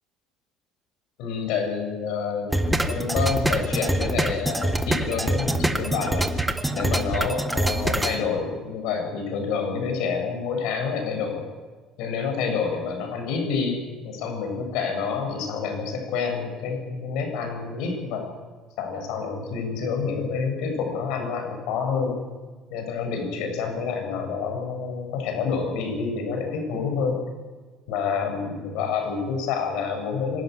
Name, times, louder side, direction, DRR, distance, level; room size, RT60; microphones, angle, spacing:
voice 1, 1.2-6.3 6.7-11.5 12.0-13.8 14.0-18.3 18.8-22.2 22.7-27.2 27.9-30.4, left 5 dB, 80° left, 4 dB, 7.4 m, -28 dB
sound 1, 2.5-8.2, right 1 dB, 5° right, 1.5 m, -25 dB
26.0 x 12.0 x 9.4 m, 1.4 s
cardioid pair, 130°, 0 cm